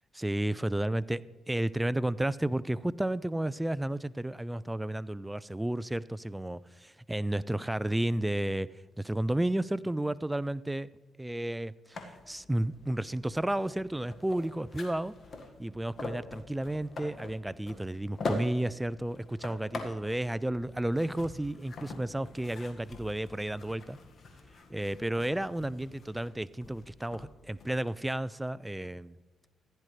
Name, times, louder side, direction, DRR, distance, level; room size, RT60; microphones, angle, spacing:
voice 1, 0.1-1.2 1.5-8.7 9.0-10.9 11.2-15.1 15.6-24.0 24.7-29.2, right 1 dB, 10° right, 18 dB, 0.4 m, -32 dB
sound 1, 11.9-28.0, left 3 dB, 50° left, 1.7 m, -44 dB
15.0 x 10.5 x 3.3 m, 1.3 s
cardioid pair, 90°, 0 cm